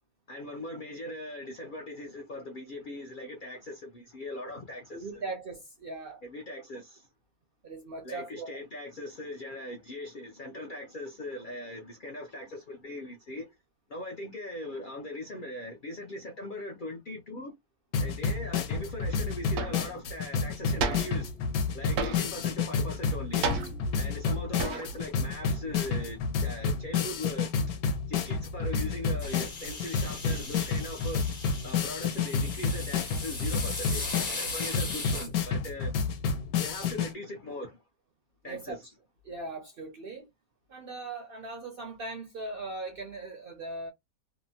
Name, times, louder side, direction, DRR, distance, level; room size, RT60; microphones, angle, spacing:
voice 1, 0.3-5.2 6.2-7.1 8.0-13.5 13.9-17.5 18.0-21.3 21.7-23.5 24.0-27.5 28.1-31.2 31.6-35.9 36.6-37.8 38.4-38.9, left 1 dB, 70° left, 0.4 m, -40 dB
voice 2, 4.9-6.2 7.6-8.6 38.4-38.8 39.2-40.3 40.7-43.9, right 3 dB, 60° right, 0.6 m, -39 dB
sound 1, 17.9-37.1, left 5 dB, 85° left, 1.1 m, -30 dB
sound 2, 18.9-19.0 19.6-19.9 20.8-21.3 22.0-22.5 23.4-24.0 24.6-25.1 25.4-26.2, right 3 dB, 80° right, 1.0 m, -32 dB
sound 3, 29.2-35.3, left 3 dB, 35° left, 0.7 m, -38 dB
2.8 x 2.0 x 2.6 m
omnidirectional pair, 1.5 m